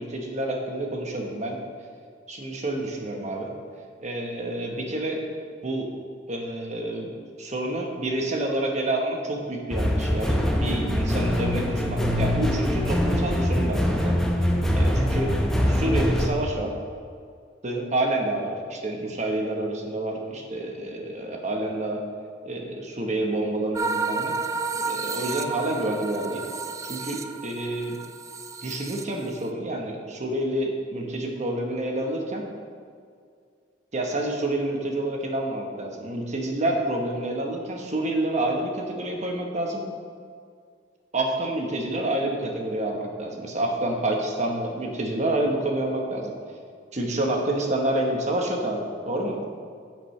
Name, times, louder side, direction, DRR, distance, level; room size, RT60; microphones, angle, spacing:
voice 1, 0.0-1.6 2.3-3.6 4.0-5.2 5.6-5.9 6.3-7.1 7.4-14.2 14.7-15.3 15.7-16.7 17.6-22.0 22.4-24.3 24.7-26.4 26.8-28.0 28.6-32.4 33.9-39.8 41.1-46.3 46.9-49.4, right 1 dB, 40° right, 1 dB, 1.2 m, -28 dB
sound 1, 9.7-16.3, equal, 5° left, 0.8 m, -23 dB
sound 2, 23.7-29.5, right 4 dB, 15° right, 0.3 m, -31 dB
10.5 x 7.5 x 3.3 m, 2.1 s
head